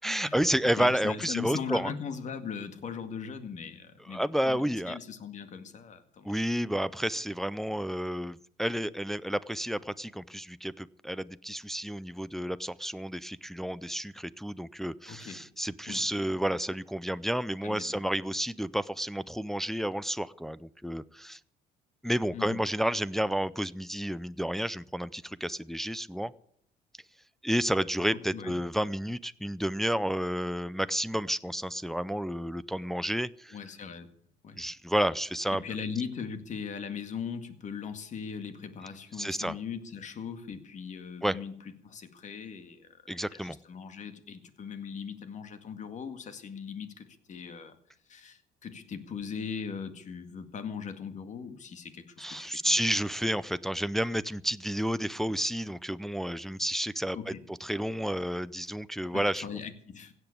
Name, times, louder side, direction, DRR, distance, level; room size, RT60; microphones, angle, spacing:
voice 1, 0.0-1.9 4.1-5.0 6.2-21.4 22.0-26.3 27.4-33.6 34.5-35.6 39.2-39.6 41.2-41.4 43.1-43.6 52.2-59.4, equal, ahead, 0.5 m, -31 dB
voice 2, 0.8-6.3 15.1-15.4 15.9-16.1 17.6-18.0 22.3-22.6 28.3-28.6 33.5-34.1 34.4-34.6 35.5-41.6 41.8-47.8 48.1-52.7 57.1-57.4 59.1-60.1, left 6 dB, 45° left, 2.0 m, -39 dB
16.5 x 8.1 x 8.6 m
cardioid pair, 110°, 17 cm